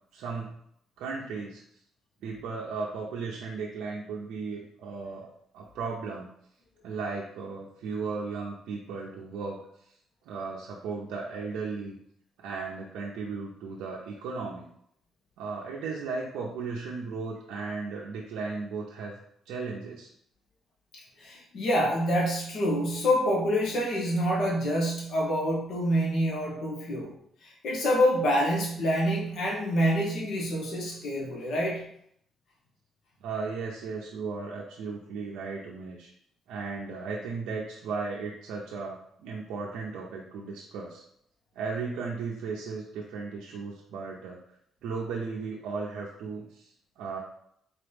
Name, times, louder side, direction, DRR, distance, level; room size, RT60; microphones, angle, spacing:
voice 1, 0.1-0.6 1.0-1.6 2.2-6.3 6.8-9.6 10.3-12.0 12.4-14.7 15.4-19.2 19.5-20.1 33.2-36.1 36.5-41.0 41.6-44.4 44.8-47.2, right 4 dB, 90° right, -3 dB, 0.6 m, -36 dB
voice 2, 21.2-27.1 27.4-31.9, equal, 65° left, -3 dB, 1.3 m, -27 dB
4.1 x 2.9 x 3.4 m, 0.68 s
cardioid pair, 90°, 0 cm